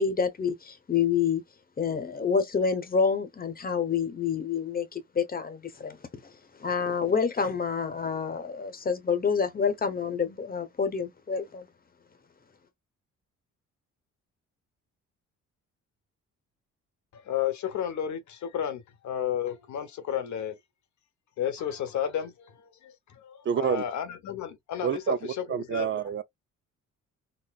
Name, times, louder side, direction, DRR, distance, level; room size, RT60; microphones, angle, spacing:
voice 1, 0.0-1.4 1.8-6.0 6.6-11.7, left 6 dB, 30° left, 1.0 m, -28 dB
voice 2, 17.1-20.6 21.4-26.0, left 9 dB, 70° left, 1.1 m, -32 dB
voice 3, 23.5-23.8 24.8-26.2, right 8 dB, 40° right, 0.5 m, -28 dB
4.1 x 2.1 x 2.4 m
cardioid pair, 90°, 30 cm